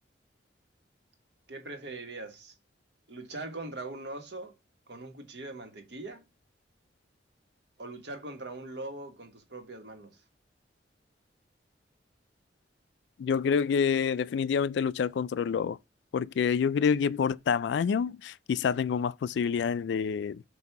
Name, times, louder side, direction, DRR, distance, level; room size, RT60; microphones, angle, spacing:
voice 1, 1.5-2.5 3.1-4.5 4.9-6.2 7.8-10.2, right 2 dB, 65° right, 1.4 m, -41 dB
voice 2, 13.2-15.8 16.1-20.4, left 6 dB, 70° left, 0.3 m, -27 dB
7.9 x 2.7 x 5.8 m
head